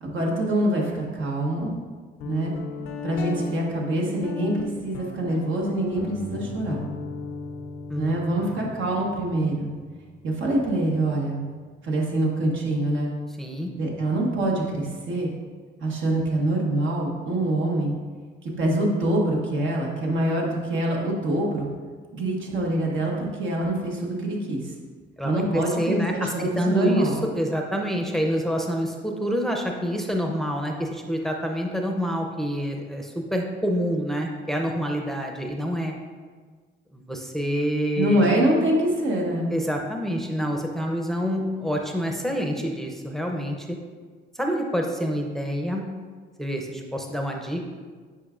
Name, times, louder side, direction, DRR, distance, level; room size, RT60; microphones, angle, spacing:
voice 1, 0.0-1.7 2.2-2.5 3.0-6.8 8.0-9.7 10.2-11.4 11.8-13.1 13.8-15.3 15.8-17.9 18.4-21.7 22.1-24.7 25.2-27.2 37.9-39.5, right 1 dB, 75° right, -2 dB, 1.3 m, -25 dB
Guitar, 2.2-11.7, left 4 dB, 85° left, 0.6 m, -37 dB
voice 2, 7.9-8.6 13.4-13.7 25.2-35.9 36.9-38.3 39.5-43.7 44.3-45.8 46.4-47.7, equal, ahead, 1 dB, 0.6 m, -27 dB
8.6 x 4.7 x 2.5 m, 1.5 s
cardioid pair, 90°, 20 cm